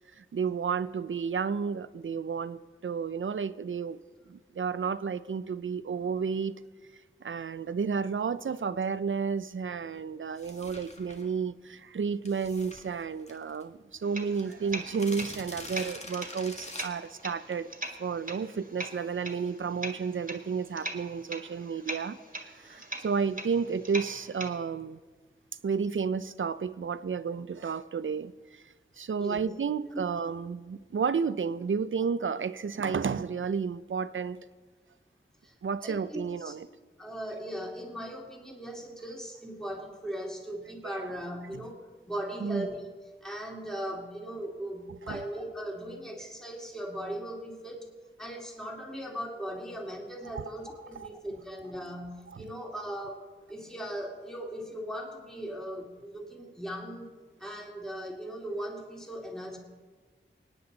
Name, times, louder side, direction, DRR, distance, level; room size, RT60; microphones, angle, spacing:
voice 1, 0.2-4.0 4.3-6.6 7.2-17.7 18.0-22.2 22.6-25.0 25.6-28.6 29.0-34.4 35.6-36.7 40.8-40.9 42.4-42.7 45.1-45.2 50.3-50.4 51.0-51.1, right 6 dB, 75° right, 15 dB, 0.5 m, -32 dB
sound 1, 10.3-11.3 12.3-13.6 14.0-14.1 14.2-17.7, left 1 dB, 35° left, 1.6 m, -45 dB
sound 2, 14.0-24.5, right 1 dB, 40° right, 1.7 m, -42 dB
voice 2, 35.8-36.6 37.0-42.8 43.2-47.9 48.2-53.2 53.5-57.1 57.4-59.6, equal, 5° left, -1 dB, 2.6 m, -38 dB
24.5 x 9.7 x 4.0 m, 1.4 s
wide cardioid pair, 65°, 20 cm